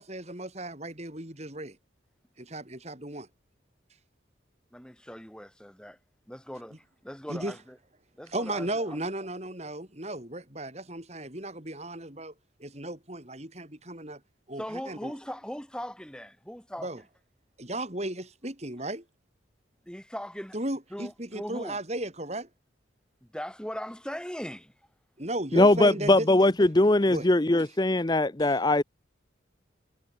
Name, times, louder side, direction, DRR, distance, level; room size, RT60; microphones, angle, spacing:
voice 1, 0.0-1.8 2.4-3.3 7.3-7.5 8.3-12.3 12.6-14.2 14.5-15.1 16.8-17.0 17.6-19.0 20.5-22.5 25.2-26.3 27.1-27.3 28.4-28.6, right 1 dB, 35° right, 5.0 m, -35 dB
voice 2, 4.7-6.0 6.3-7.8 8.2-9.0 14.6-17.0 19.9-20.6 20.9-21.8 23.2-24.7, equal, 5° left, 6.5 m, -39 dB
voice 3, 25.5-28.8, left 2 dB, 20° left, 0.7 m, -21 dB
head